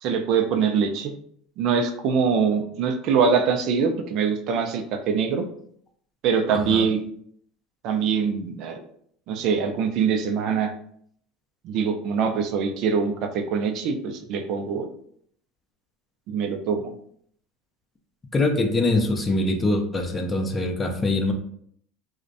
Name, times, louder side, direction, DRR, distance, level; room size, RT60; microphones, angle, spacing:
voice 1, 0.0-1.1 1.6-5.5 6.2-7.0 7.8-8.8 9.3-10.7 11.6-14.9 16.3-16.9, right 6 dB, 55° right, 5 dB, 0.3 m, -23 dB
voice 2, 6.5-6.9 18.3-21.3, left 2 dB, 20° left, 4 dB, 0.4 m, -23 dB
2.5 x 2.0 x 2.6 m, 0.64 s
supercardioid pair, 120°, 0 cm